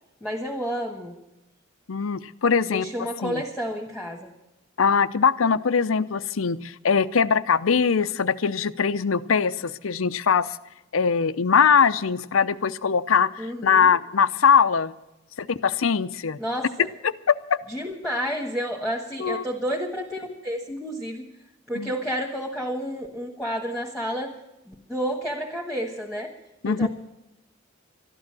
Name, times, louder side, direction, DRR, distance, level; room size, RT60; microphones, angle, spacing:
voice 1, 0.2-1.1 2.6-4.3 13.4-14.0 16.4-16.9 17.7-21.2 21.7-24.3 24.7-26.3 26.6-26.9, equal, ahead, -2 dB, 1.6 m, -30 dB
voice 2, 1.9-2.9 3.2-3.4 4.8-10.6 10.9-14.9 15.4-16.4 17.0-17.6 19.2-19.4 21.7-21.9 26.6-26.9, left 6 dB, 90° left, 15 dB, 0.6 m, -22 dB
13.5 x 11.5 x 7.5 m, 0.93 s
head